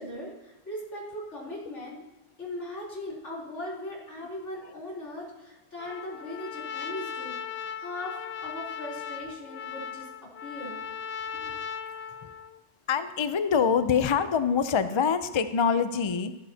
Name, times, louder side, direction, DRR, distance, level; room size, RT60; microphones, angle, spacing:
voice 1, 0.0-2.0 2.4-8.2 8.4-10.1 10.4-10.8 11.3-11.5, left 1 dB, 85° left, -6 dB, 3.8 m, -39 dB
Trumpet, 5.8-12.6, left 7 dB, 60° left, 0.8 m, -38 dB
voice 2, 12.9-16.4, left 6 dB, 40° left, 11 dB, 0.4 m, -25 dB
13.0 x 12.5 x 2.8 m, 1.1 s
omnidirectional pair, 1.2 m